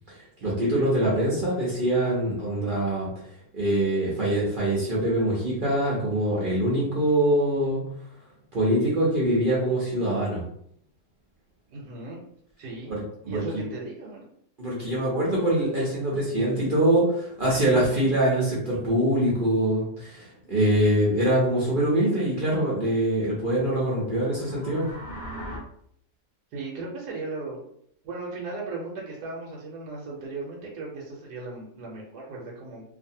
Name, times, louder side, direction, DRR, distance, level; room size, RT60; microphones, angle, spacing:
voice 1, 0.1-3.1 3.5-7.8 8.5-10.4 12.9-13.6 14.6-24.9, right 1 dB, 45° right, -6 dB, 0.7 m, -24 dB
voice 2, 2.6-2.9 11.7-12.2 12.6-12.9 13.3-14.3 26.5-27.6 28.0-32.8, right 3 dB, 75° right, -3 dB, 1.2 m, -36 dB
sound 1, 24.2-25.6, equal, 65° left, 0.5 m, -39 dB
2.6 x 2.5 x 2.7 m, 0.69 s
omnidirectional pair, 1.7 m